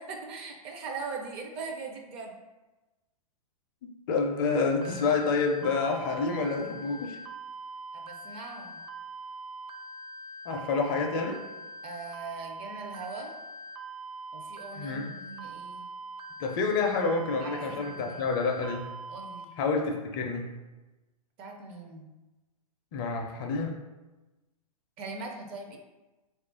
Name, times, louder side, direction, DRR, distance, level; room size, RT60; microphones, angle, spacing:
voice 1, 0.0-2.3 7.9-8.8 11.8-13.3 14.3-15.8 17.4-18.3 19.1-19.6 21.4-22.1 25.0-25.8, right 4 dB, 30° right, 2 dB, 0.4 m, -40 dB
voice 2, 4.1-7.2 10.5-11.4 14.8-15.1 16.4-18.8 19.6-20.4 22.9-23.8, left 4 dB, 35° left, 3 dB, 0.5 m, -28 dB
sound 1, 4.8-19.4, right 2 dB, 85° right, 0.4 m, -43 dB
3.2 x 2.4 x 3.7 m, 1.1 s
hypercardioid pair, 120°, 19 cm